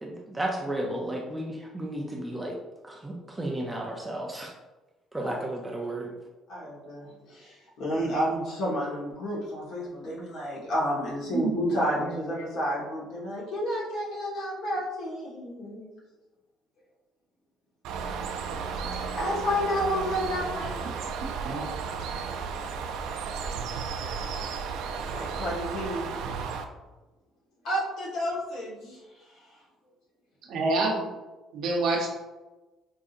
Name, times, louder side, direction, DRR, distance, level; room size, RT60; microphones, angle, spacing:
voice 1, 0.0-2.6 2.8-4.5 5.1-6.1, right 1 dB, 10° right, -2 dB, 0.4 m, -33 dB
voice 2, 6.5-15.9 18.5-18.6 19.1-20.8 25.1-26.2 27.6-29.0, equal, 65° left, -5 dB, 1.3 m, -30 dB
voice 3, 11.3-12.1 21.4-21.6 30.5-31.0 31.5-32.1, right 3 dB, 60° right, 0 dB, 0.7 m, -28 dB
Bird, 17.8-26.6, right 5 dB, 85° right, 0.3 m, -34 dB
4.6 x 2.6 x 2.5 m, 1.1 s
cardioid pair, 175°, 0 cm